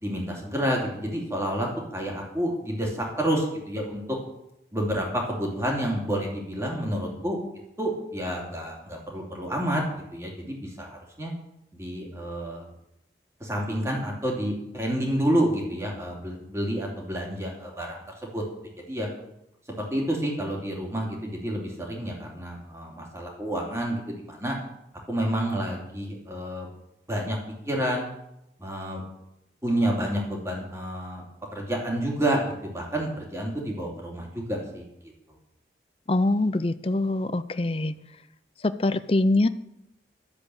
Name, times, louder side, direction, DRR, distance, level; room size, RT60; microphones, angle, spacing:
voice 1, 0.0-4.2 4.7-7.4 7.8-11.3 11.7-12.7 13.4-18.4 18.9-19.1 19.8-24.6 25.1-26.7 27.1-27.4 27.6-28.1 28.6-29.0 29.6-31.2 31.5-34.8, right 1 dB, 15° right, -1 dB, 3.0 m, -29 dB
voice 2, 36.1-37.9 38.6-39.5, left 2 dB, 30° left, 12 dB, 0.5 m, -24 dB
12.5 x 7.7 x 8.0 m, 0.82 s
head